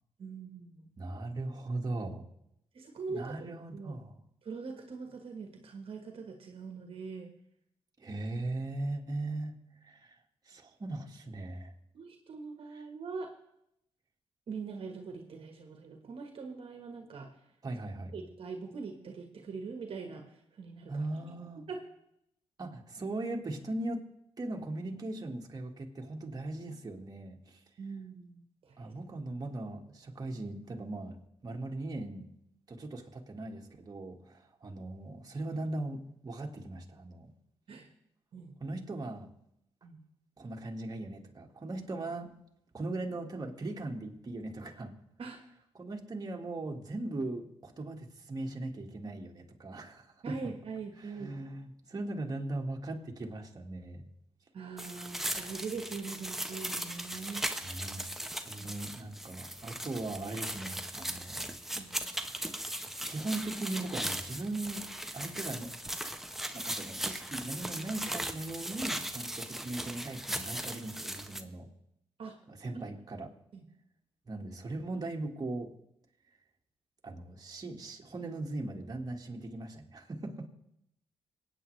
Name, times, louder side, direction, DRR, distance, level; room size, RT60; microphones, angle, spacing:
voice 1, 0.2-0.9 2.7-4.0 4.4-7.3 11.9-13.3 14.5-17.3 18.1-21.0 21.7-21.8 27.8-28.9 37.7-37.9 38.3-38.7 39.8-40.0 45.2-45.4 50.2-51.4 54.5-57.4 58.6-58.8 61.7-61.9 72.2-72.4 72.7-72.8 73.5-73.7, right 4 dB, 60° right, 4 dB, 1.4 m, -42 dB
voice 2, 1.0-2.2 3.1-4.2 8.0-9.6 9.8-10.2 10.5-11.7 17.6-18.1 20.9-21.7 22.6-24.1 24.4-27.6 28.8-31.2 31.4-32.3 32.7-37.3 38.6-39.3 40.4-42.3 42.7-45.0 45.8-50.5 51.2-54.1 57.6-58.1 58.4-61.5 61.8-61.9 63.0-64.9 65.1-65.7 66.5-71.7 72.5-73.3 74.3-75.7 77.0-80.5, right 2 dB, 35° right, 1 dB, 1.8 m, -39 dB
sound 1, 54.8-71.4, right 1 dB, 5° right, 1.0 m, -38 dB
26.5 x 8.9 x 3.3 m, 0.79 s
cardioid pair, 70°, 10 cm